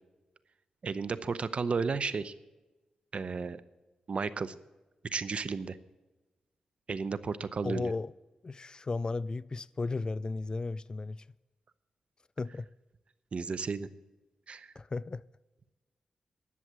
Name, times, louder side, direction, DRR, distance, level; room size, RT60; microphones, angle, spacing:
voice 1, 0.8-2.3 3.1-3.6 4.1-4.5 5.1-5.8 6.9-7.9 13.3-13.9 14.5-14.7, right 5 dB, 55° right, 0.7 m, -33 dB
voice 2, 7.6-8.1 8.4-11.2 12.4-12.7 14.8-15.2, left 3 dB, 35° left, 0.3 m, -34 dB
11.0 x 7.3 x 8.7 m
cardioid pair, 75°, 2 cm